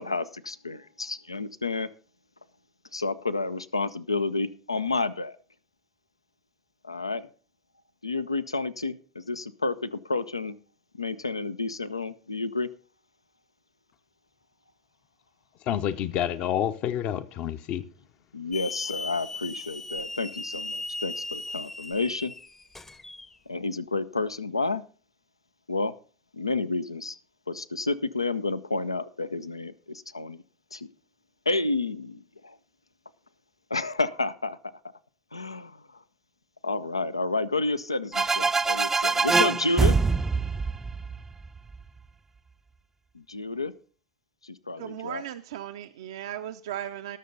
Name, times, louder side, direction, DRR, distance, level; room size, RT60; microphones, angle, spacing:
voice 1, 0.0-1.9 2.9-5.4 6.8-7.3 8.0-10.5 11.0-12.7 18.3-22.3 23.5-24.8 25.7-25.9 26.3-27.2 27.5-30.4 30.7-30.9 31.5-32.6 33.7-34.6 35.3-36.0 36.6-39.9 43.1-43.7 44.4-45.3, left 3 dB, 85° left, 0.5 m, -30 dB
voice 2, 15.7-17.8, left 10 dB, 45° left, 0.7 m, -28 dB
Hiss / Alarm, 18.5-23.3, left 3 dB, 15° left, 0.7 m, -37 dB
sound 1, 38.1-41.8, right 4 dB, 15° right, 0.4 m, -24 dB
voice 3, 44.8-47.2, right 11 dB, 65° right, 0.5 m, -36 dB
19.0 x 6.7 x 3.9 m
figure-of-eight pair, 80°, 3 cm